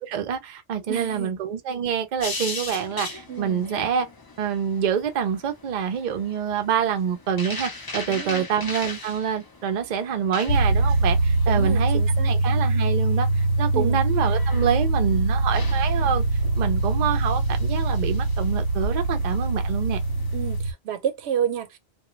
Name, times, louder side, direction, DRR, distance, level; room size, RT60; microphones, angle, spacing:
voice 1, 0.0-4.1 4.4-16.2 16.6-20.0, right 8 dB, 55° right, 0.6 m, -26 dB
voice 2, 0.9-1.3 3.3-3.6 8.1-8.5 11.5-12.3 13.7-14.0 20.3-21.8, right 9 dB, 85° right, 0.9 m, -30 dB
sound 1, 2.2-20.6, left 3 dB, 30° left, 0.5 m, -40 dB
sound 2, 10.5-20.7, right 2 dB, 85° left, 0.9 m, -23 dB
2.2 x 2.2 x 3.0 m
omnidirectional pair, 1.1 m